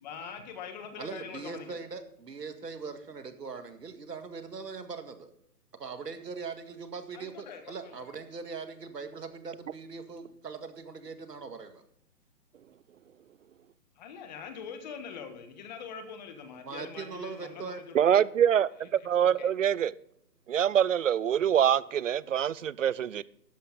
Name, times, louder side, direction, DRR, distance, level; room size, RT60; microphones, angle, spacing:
voice 1, 0.0-1.7 7.1-8.0 14.0-18.2 19.2-19.5, left 6 dB, 25° left, 7 dB, 1.5 m, -43 dB
voice 2, 1.0-5.3 5.8-11.8 16.6-17.8, right 5 dB, 80° right, 8 dB, 2.0 m, -41 dB
voice 3, 17.9-19.9 20.5-23.2, right 9 dB, 55° right, 21 dB, 0.5 m, -25 dB
13.0 x 10.0 x 4.0 m, 0.69 s
hypercardioid pair, 150°, 48 cm